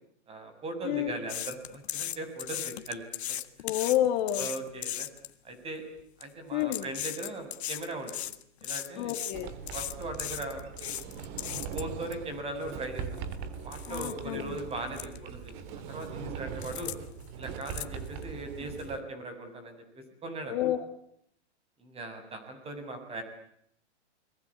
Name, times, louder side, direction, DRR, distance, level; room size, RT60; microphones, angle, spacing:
voice 1, 0.3-3.4 4.4-5.1 5.4-5.8 6.2-8.2 8.6-9.1 9.7-11.2 11.7-13.0 13.6-16.9 17.3-20.7 21.8-23.2, right 2 dB, 15° right, 7 dB, 7.2 m, -39 dB
sound 1, 1.3-5.3 6.0-6.2 6.6-12.1 12.6-12.7 13.2-13.3 13.7-14.1 14.6-14.7 14.9-15.2 15.4-16.0 16.6-17.0 17.2-18.4 18.8-18.9, left 12 dB, 65° left, 1.9 m, -37 dB
voice 2, 3.6-4.5 6.5-6.9 9.0-9.5 13.9-14.6 20.5-20.8, left 12 dB, 40° left, 7 dB, 2.7 m, -29 dB
Sliding door, 9.3-19.0, right 6 dB, 35° right, 3.3 m, -41 dB
29.5 x 22.5 x 8.7 m, 0.71 s
hypercardioid pair, 145°, 35 cm